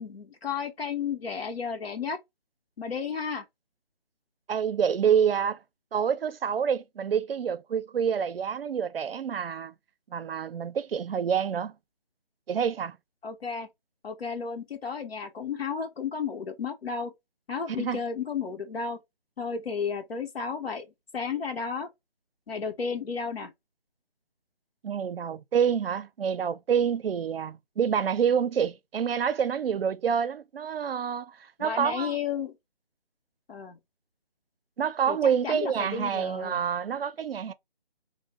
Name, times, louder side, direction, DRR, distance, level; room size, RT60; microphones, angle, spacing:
voice 1, 0.0-2.2 2.8-3.5 13.2-13.7 14.0-17.1 17.5-19.0 19.4-20.9 21.1-21.9 22.5-23.5 31.6-32.6 33.5-33.8 35.1-35.2 35.4-36.6, left 6 dB, 85° left, 0.7 m, -33 dB
voice 2, 4.5-5.6 5.9-9.7 10.1-11.7 12.5-13.0 17.8-18.0 24.8-32.2 34.8-37.5, right 7 dB, 75° right, 0.5 m, -27 dB
2.6 x 2.0 x 3.1 m
figure-of-eight pair, 165°, 29 cm